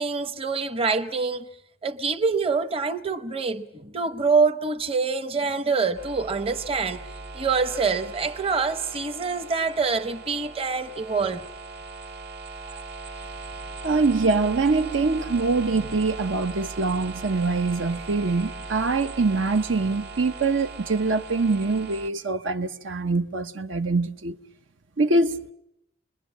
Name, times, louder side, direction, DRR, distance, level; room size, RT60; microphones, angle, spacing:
voice 1, 0.0-1.5 1.8-7.1 7.3-11.4 12.7-12.8, right 4 dB, 30° right, 0.9 m, -25 dB
Lecture Hall Mains, 5.9-22.1, right 3 dB, 55° right, 1.4 m, -39 dB
voice 2, 13.8-24.4 25.0-25.4, right 3 dB, 80° right, 0.9 m, -24 dB
28.0 x 21.5 x 7.4 m
head